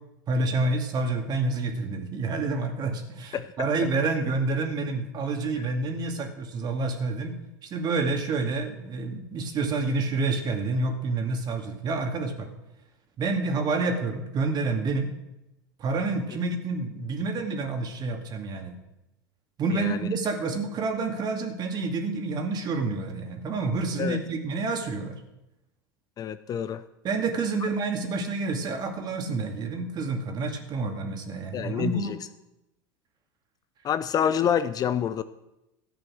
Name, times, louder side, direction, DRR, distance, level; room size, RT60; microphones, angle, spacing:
voice 1, 0.3-7.3 7.6-12.5 13.2-15.1 15.8-18.8 19.6-25.2 27.0-32.2, right 3 dB, 40° right, 4 dB, 2.3 m, -28 dB
voice 2, 19.7-20.1 24.0-24.2 26.2-26.8 31.5-32.2 33.8-35.2, left 8 dB, 35° left, 13 dB, 0.6 m, -27 dB
13.5 x 7.6 x 6.3 m, 0.93 s
hypercardioid pair, 85°, 11 cm